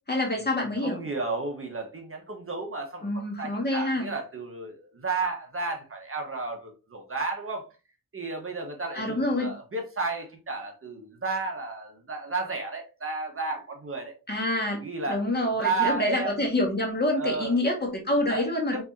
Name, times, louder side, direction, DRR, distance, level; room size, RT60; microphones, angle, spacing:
voice 1, 0.1-1.0 3.0-4.1 8.9-9.5 14.3-18.8, left 1 dB, 30° left, 1 dB, 1.8 m, -27 dB
voice 2, 0.8-7.7 8.1-14.1 14.8-15.2 15.6-16.3 17.2-17.6 18.3-18.8, right 3 dB, 40° right, 2 dB, 1.4 m, -32 dB
4.6 x 4.2 x 2.7 m, 0.30 s
cardioid pair, 80°, 34 cm